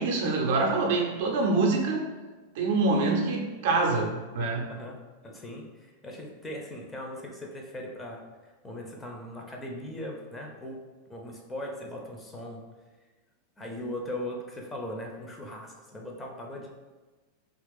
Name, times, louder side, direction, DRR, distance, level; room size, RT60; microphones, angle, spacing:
voice 1, 0.0-2.1 2.6-4.7, right 3 dB, 50° right, 1 dB, 0.5 m, -25 dB
voice 2, 5.2-10.8 11.1-12.6 13.6-16.7, left 1 dB, 15° left, 0 dB, 0.5 m, -39 dB
2.9 x 2.4 x 3.2 m, 1.3 s
figure-of-eight pair, 90°, 0 cm